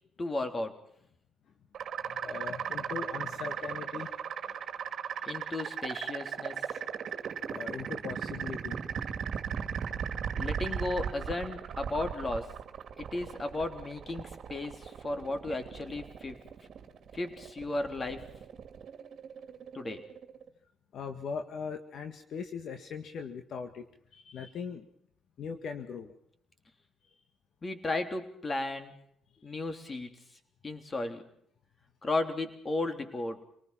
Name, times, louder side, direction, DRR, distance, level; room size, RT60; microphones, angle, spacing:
voice 1, 0.2-0.8 5.2-6.6 10.3-12.5 13.0-16.4 17.1-18.3 19.7-20.0 27.6-29.0 29.4-30.2 30.6-31.3 32.0-33.4, left 2 dB, 30° left, 7 dB, 3.4 m, -34 dB
sound 1, 1.7-20.5, right 8 dB, 60° right, 2.0 m, -37 dB
voice 2, 2.0-4.2 4.4-4.6 6.8-6.9 7.2-8.8 20.9-23.9 24.1-24.9 25.4-26.1, left 6 dB, 65° left, 6 dB, 1.8 m, -40 dB
27.0 x 19.5 x 5.8 m, 0.69 s
cardioid pair, 90°, 0 cm